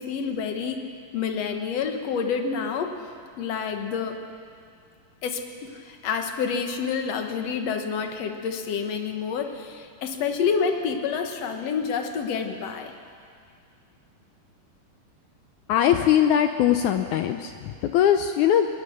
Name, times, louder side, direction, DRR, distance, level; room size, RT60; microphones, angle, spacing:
voice 1, 0.0-3.0 3.4-4.2 5.2-12.9, left 6 dB, 60° left, 5 dB, 2.0 m, -28 dB
voice 2, 15.7-17.5 17.8-18.7, left 10 dB, 80° left, 7 dB, 1.7 m, -20 dB
22.5 x 20.0 x 6.5 m, 2.2 s
omnidirectional pair, 4.2 m